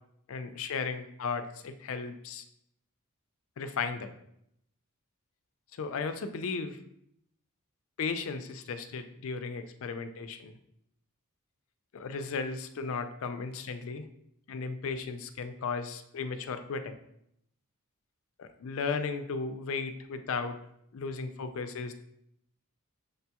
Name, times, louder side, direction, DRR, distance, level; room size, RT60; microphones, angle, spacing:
voice 1, 0.3-2.4 3.6-4.1 5.7-6.8 8.0-10.5 11.9-14.1 14.5-17.0 18.4-20.6 20.9-21.9, left 5 dB, 65° left, 8 dB, 0.4 m, -35 dB
6.5 x 2.2 x 2.8 m, 0.75 s
head